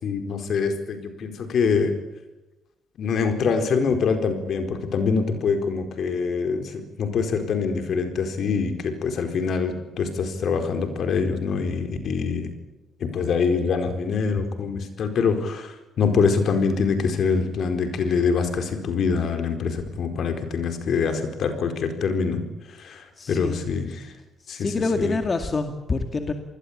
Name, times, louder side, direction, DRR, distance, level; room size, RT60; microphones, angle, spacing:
voice 1, 0.0-1.9 3.0-12.5 13.0-22.4 22.8-24.0 24.5-25.1, left 5 dB, 65° left, 7 dB, 4.4 m, -24 dB
voice 2, 23.2-23.6 24.5-26.3, left 3 dB, 35° left, 6 dB, 2.3 m, -26 dB
28.0 x 20.5 x 8.8 m, 0.99 s
cardioid pair, 90°, 0 cm